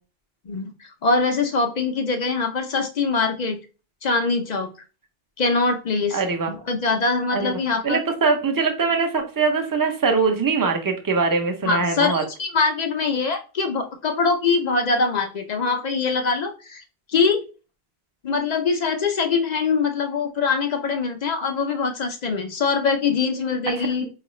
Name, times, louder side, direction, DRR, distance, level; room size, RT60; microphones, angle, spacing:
voice 1, 0.5-3.6 4.0-4.7 5.4-6.2 6.5-8.0 11.6-16.8 17.1-17.4 18.2-24.1, left 4 dB, 55° left, 6 dB, 0.5 m, -23 dB
voice 2, 6.1-6.5 7.3-7.5 7.8-12.2 23.8-23.9, right 4 dB, 25° right, 4 dB, 0.5 m, -22 dB
4.5 x 2.4 x 3.0 m, 0.34 s
omnidirectional pair, 1.0 m